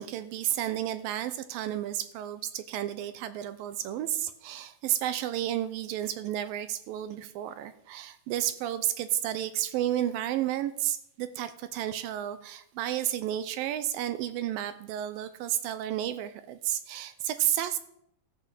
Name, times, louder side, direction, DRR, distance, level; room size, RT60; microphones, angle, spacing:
voice 1, 0.0-17.8, right 12 dB, 80° right, 12 dB, 2.2 m, -32 dB
14.5 x 6.0 x 7.4 m, 0.73 s
omnidirectional pair, 4.6 m